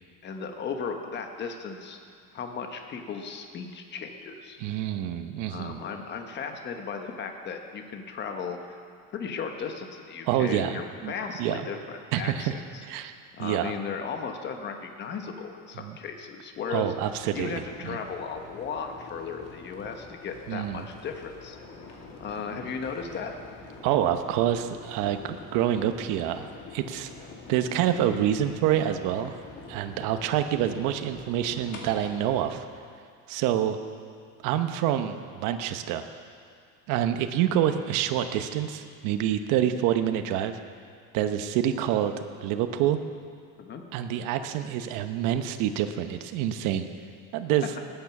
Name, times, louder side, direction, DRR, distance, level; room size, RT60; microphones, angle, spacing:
voice 1, 0.2-2.0 2.3-4.6 5.5-8.8 9.1-12.8 13.4-16.9 17.3-21.6 22.2-23.4 43.6-43.8, left 5 dB, 35° left, 5 dB, 1.2 m, -36 dB
voice 2, 4.6-5.8 10.3-11.1 11.4-11.7 12.1-12.5 12.8-13.7 15.8-16.0 16.7-17.5 17.8-18.0 20.5-20.8 23.8-26.5 26.7-27.1 27.5-29.3 29.7-32.6 33.3-33.8 34.4-36.0 36.9-40.6 41.1-42.1 42.4-43.0 43.9-46.9 47.3-47.7, right 11 dB, 65° right, 8 dB, 1.0 m, -27 dB
sound 1, 17.1-32.6, left 4 dB, 50° left, 2.4 m, -46 dB
19.0 x 9.1 x 6.0 m, 2.3 s
cardioid pair, 155°, 33 cm